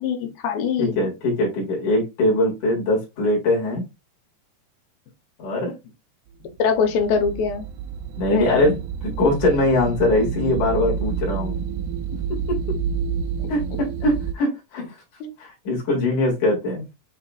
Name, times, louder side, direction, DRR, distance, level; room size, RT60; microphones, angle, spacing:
voice 1, 0.0-1.0 6.6-7.7 8.3-8.7 15.2-15.3, left 6 dB, 85° left, 2.8 m, -23 dB
voice 2, 0.8-3.8 5.4-5.7 8.2-11.6 12.5-12.6 13.5-14.8 15.4-16.8, left 1 dB, 60° left, 3.1 m, -22 dB
sound 1, 6.6-14.3, right 7 dB, 85° right, 1.8 m, -29 dB
7.7 x 2.8 x 2.2 m
omnidirectional pair, 4.0 m